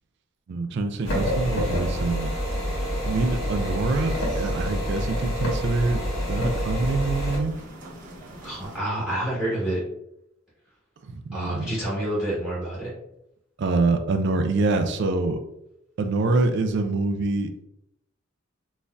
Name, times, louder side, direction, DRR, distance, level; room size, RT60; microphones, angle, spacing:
voice 1, 0.5-2.3 3.1-6.0 6.3-7.5 11.0-11.7 13.6-15.4 16.0-17.6, right 3 dB, 60° right, 7 dB, 0.4 m, -25 dB
sound 1, 1.0-8.8, right 1 dB, 40° right, 1.1 m, -43 dB
sound 2, 1.1-7.4, equal, 70° left, 1.3 m, -27 dB
voice 2, 8.4-9.8 11.3-12.9, right 1 dB, 5° right, -7 dB, 1.1 m, -28 dB
4.0 x 2.5 x 2.3 m, 0.81 s
head